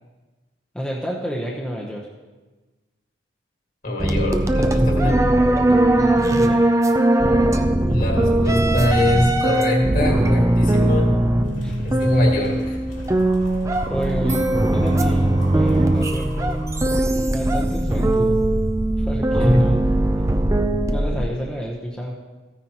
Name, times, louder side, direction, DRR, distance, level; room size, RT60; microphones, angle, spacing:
voice 1, 0.7-2.1 6.0-6.7 11.6-11.7 13.9-14.4 14.7-16.7 17.3-18.4 19.0-19.8 20.9-22.1, equal, 5° left, -5 dB, 0.8 m, -30 dB
voice 2, 3.8-5.2 7.9-11.1 11.8-12.8 19.4-19.8, left 1 dB, 45° left, -1 dB, 1.9 m, -22 dB
sound 1, 4.0-21.3, right 1 dB, 15° right, 0.4 m, -19 dB
sound 2, 11.4-17.4, equal, 80° left, 2.9 m, -43 dB
14.5 x 9.5 x 3.0 m, 1.2 s
head